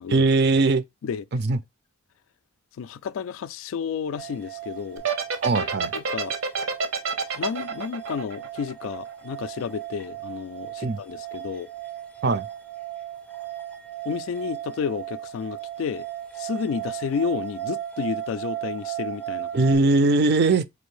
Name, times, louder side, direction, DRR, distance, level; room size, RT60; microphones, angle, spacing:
voice 1, 0.1-0.8 1.3-1.6 5.4-5.9 10.8-11.0 12.2-12.5 19.5-20.6, right 3 dB, 50° right, 0.4 m, -20 dB
voice 2, 2.8-5.1 5.9-6.3 7.3-11.7 14.1-16.1 16.4-19.5, left 6 dB, 75° left, 0.3 m, -31 dB
sound 1, 4.2-19.8, right 13 dB, 5° left, 0.4 m, -36 dB
sound 2, 5.0-9.3, right 5 dB, 80° right, 0.9 m, -27 dB
4.2 x 2.6 x 3.1 m
head